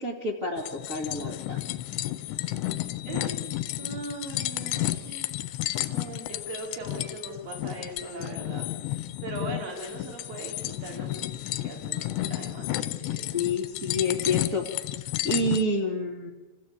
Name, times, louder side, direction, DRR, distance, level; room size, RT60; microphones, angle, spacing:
voice 1, 0.0-1.6 13.3-14.7 15.2-16.3, left 2 dB, 60° right, -2 dB, 0.7 m, -28 dB
sound 1, 0.6-15.6, left 15 dB, 85° left, 3.1 m, -32 dB
voice 2, 3.0-8.7 9.2-13.4, right 2 dB, 35° right, 0 dB, 4.5 m, -40 dB
27.0 x 15.0 x 8.6 m, 1.2 s
omnidirectional pair, 5.1 m